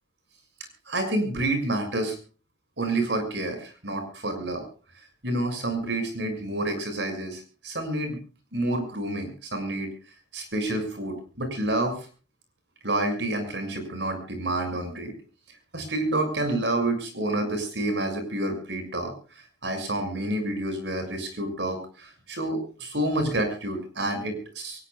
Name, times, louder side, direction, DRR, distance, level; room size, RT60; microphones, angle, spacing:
voice 1, 0.9-2.2 2.8-4.6 5.2-8.2 8.5-9.9 10.3-11.9 12.8-15.1 15.7-19.1 19.6-24.8, right 1 dB, 75° right, 7 dB, 6.2 m, -28 dB
23.5 x 19.0 x 2.4 m, 0.36 s
head